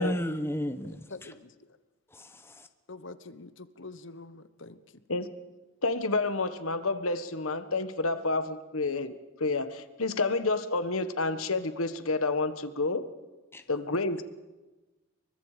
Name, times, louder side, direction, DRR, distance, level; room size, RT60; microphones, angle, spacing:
voice 1, 0.0-1.3 2.1-2.7 13.5-13.6, equal, 10° left, 9 dB, 1.0 m, -33 dB
voice 2, 0.8-1.7 2.9-4.8, left 3 dB, 60° left, 13 dB, 1.2 m, -46 dB
voice 3, 5.8-9.1 9.4-13.0 13.7-14.2, left 3 dB, 80° left, 11 dB, 1.6 m, -29 dB
28.5 x 24.0 x 5.1 m, 1.1 s
head